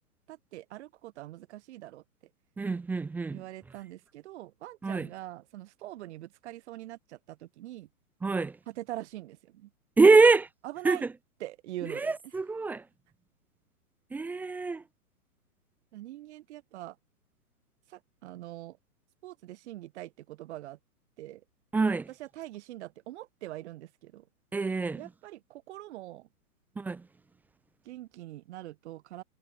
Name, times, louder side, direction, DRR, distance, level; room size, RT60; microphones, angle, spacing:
voice 1, 0.3-2.0 3.3-7.9 8.7-9.7 10.6-11.0 11.4-12.4 15.9-17.0 17.9-18.8 19.2-20.8 21.2-21.4 22.1-24.3 25.0-26.3 27.8-29.2, right 15 dB, 50° right, 4.8 m, -43 dB
voice 2, 2.6-3.4 4.8-5.1 8.2-8.6 10.0-10.5 10.8-11.0 11.8-12.9 14.1-14.8 21.7-22.1 24.5-25.0 26.8-27.1, right 3 dB, 5° right, 0.6 m, -24 dB
hypercardioid pair, 125°, 45 cm